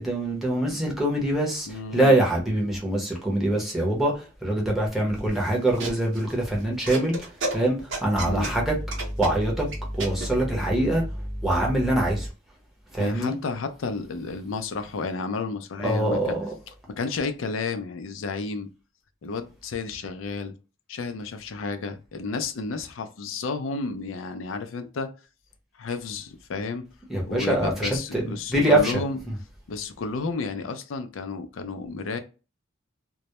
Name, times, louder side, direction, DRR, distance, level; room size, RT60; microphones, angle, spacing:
voice 1, 0.0-12.3 12.9-13.4 15.8-16.5 27.1-29.3, right 1 dB, ahead, 0.7 m, -24 dB
voice 2, 1.7-2.2 8.3-8.5 13.0-16.4 16.9-18.7 19.2-20.5 20.9-25.1 25.8-26.8 27.3-29.2 29.7-32.2, left 4 dB, 85° left, 0.4 m, -32 dB
sound 1, 5.1-10.3, right 2 dB, 75° right, 0.7 m, -34 dB
2.2 x 2.0 x 2.8 m
head